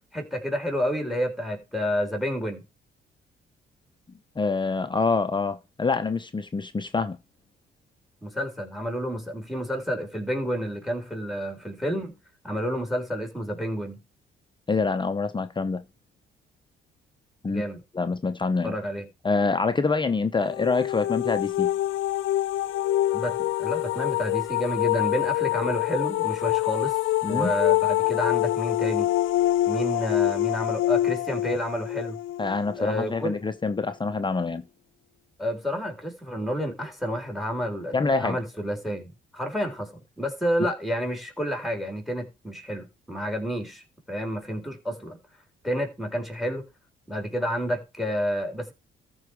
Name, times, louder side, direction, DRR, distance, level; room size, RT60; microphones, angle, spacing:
voice 1, 0.1-2.6 8.2-12.1 12.4-14.0 17.5-17.8 18.6-19.1 23.1-27.0 27.2-29.1 29.7-32.2 32.8-33.4 35.4-39.9 40.2-43.8 44.1-45.2 45.6-46.6 47.1-48.7, equal, ahead, 3.8 m, -30 dB
voice 2, 4.4-7.2 14.7-15.8 17.4-17.6 17.9-18.7 19.2-21.7 27.2-27.5 32.4-34.6 37.9-38.4, left 4 dB, 25° left, 0.8 m, -26 dB
sound 1, 20.4-33.3, left 15 dB, 80° left, 0.6 m, -25 dB
13.5 x 4.8 x 4.7 m
cardioid pair, 90°, 20 cm